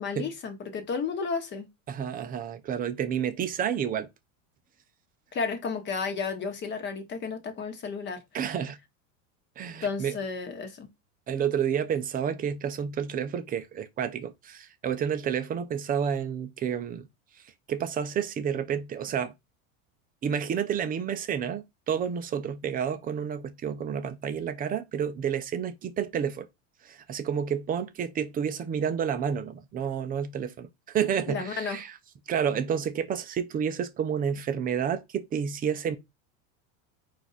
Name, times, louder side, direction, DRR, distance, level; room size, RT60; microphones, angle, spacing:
voice 1, 0.0-1.7 5.3-8.2 9.8-10.9 31.3-31.8, left 5 dB, 30° left, 1.1 m, -32 dB
voice 2, 1.9-4.1 8.3-8.8 9.6-10.2 11.3-17.1 17.4-19.3 20.2-26.5 26.8-32.0 32.3-36.0, right 8 dB, 20° right, 0.5 m, -30 dB
4.5 x 2.6 x 4.0 m
supercardioid pair, 140°, 40 cm